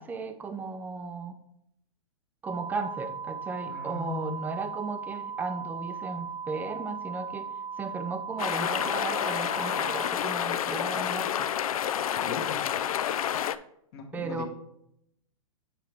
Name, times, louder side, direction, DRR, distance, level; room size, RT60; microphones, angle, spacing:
voice 1, 0.0-1.4 2.4-7.5 7.8-11.5 14.1-14.5, right 4 dB, 10° right, 8 dB, 0.5 m, -35 dB
sound 1, 2.4-10.1, right 6 dB, 70° right, 0.9 m, -38 dB
voice 2, 3.6-4.6 12.1-12.8 13.9-14.5, left 5 dB, 45° left, 4 dB, 1.3 m, -39 dB
sound 2, 8.4-13.6, left 10 dB, 80° left, 0.4 m, -29 dB
8.3 x 4.5 x 3.4 m, 0.75 s
hypercardioid pair, 135°, 18 cm